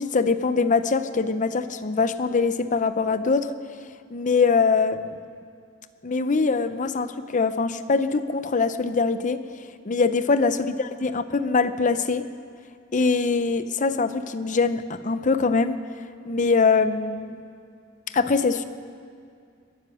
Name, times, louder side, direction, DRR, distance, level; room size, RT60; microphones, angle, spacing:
voice 1, 0.0-3.5 4.1-5.2 6.0-9.4 9.8-12.3 12.9-15.8 16.2-17.4 18.1-18.6, left 4 dB, 40° left, 12 dB, 0.6 m, -23 dB
22.5 x 9.9 x 6.3 m, 2.2 s
head